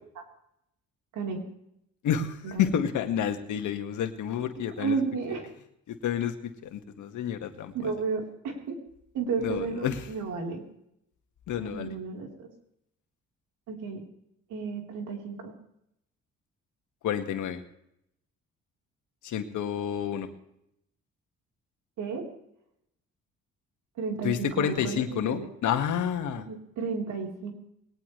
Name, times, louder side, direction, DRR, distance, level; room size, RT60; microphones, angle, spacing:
voice 1, 1.1-1.4 2.4-2.8 4.5-5.5 7.7-8.8 9.1-10.6 11.6-12.5 13.7-14.0 14.5-15.5 22.0-22.3 24.0-25.5 26.4-27.5, right 5 dB, 80° right, 1 dB, 4.2 m, -33 dB
voice 2, 2.0-5.0 5.9-7.9 9.4-10.1 11.5-12.0 17.0-17.6 19.2-20.3 24.2-26.5, left 9 dB, 80° left, 6 dB, 2.0 m, -30 dB
21.0 x 19.0 x 3.4 m, 0.76 s
cardioid pair, 90°, 30 cm